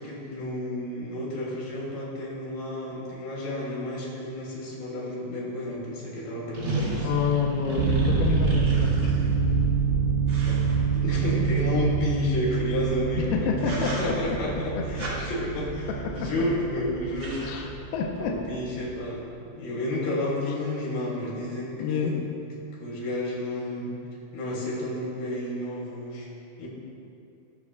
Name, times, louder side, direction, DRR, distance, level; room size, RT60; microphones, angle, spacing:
voice 1, 0.0-7.1 10.5-10.6 10.9-13.5 13.8-17.4 18.2-22.2 22.8-23.9 24.3-26.3 26.6-26.7, left 1 dB, 60° left, -5 dB, 4.5 m, -31 dB
sound 1, 5.6-5.7 6.5-9.4 10.3-11.6 13.0-13.2 13.6-14.3 15.0-15.2 16.1-16.5 16.8-16.9 17.1-17.5, right 1 dB, 40° right, 1.7 m, -34 dB
voice 2, 7.0-9.1 13.2-15.1 15.9-16.3 17.4-18.4 21.8-22.3, left 5 dB, 80° left, 0 dB, 2.3 m, -29 dB
sound 2, 7.8-19.1, right 5 dB, 90° right, 3.7 m, -27 dB
21.0 x 11.0 x 2.4 m, 2.6 s
omnidirectional pair, 5.5 m